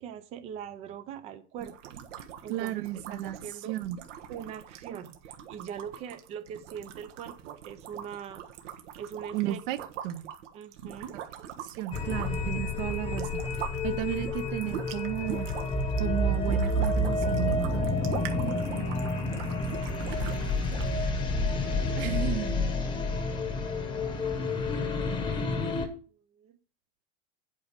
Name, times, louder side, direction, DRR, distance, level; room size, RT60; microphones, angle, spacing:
voice 1, 0.0-1.9 2.4-2.8 3.1-3.8 4.3-8.4 9.0-9.6 10.5-11.2 13.9-14.1 18.4-19.5 22.0-22.2 24.1-24.3 26.3-26.6, right 8 dB, 20° right, 0.4 m, -43 dB
sound 1, 1.6-13.8 14.1-21.0, right 9 dB, 80° right, 1.6 m, -42 dB
voice 2, 2.5-3.4 3.7-4.0 9.3-9.8 10.0-10.3 11.6-13.5 13.8-15.5 16.0-18.0 22.0-22.7, right 13 dB, 50° right, 0.8 m, -33 dB
sound 2, 11.9-25.9, left 2 dB, 15° left, 0.9 m, -29 dB
8.7 x 5.0 x 7.3 m
supercardioid pair, 170°, 36 cm